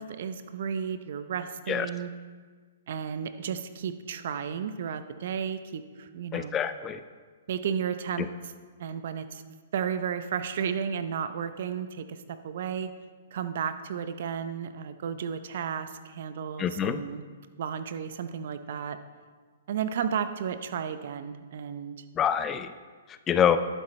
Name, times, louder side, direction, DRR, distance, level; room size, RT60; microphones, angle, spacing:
voice 1, 0.0-2.1 2.9-6.6 7.5-8.5 8.8-9.4 9.7-12.9 13.3-17.2 17.6-19.0 19.7-22.0, right 7 dB, 60° right, 11 dB, 0.7 m, -33 dB
voice 2, 6.3-7.0 16.6-17.0 22.2-22.7 23.3-23.6, left 9 dB, 20° left, 11 dB, 0.4 m, -25 dB
11.5 x 10.0 x 3.3 m, 1.5 s
hypercardioid pair, 130°, 0 cm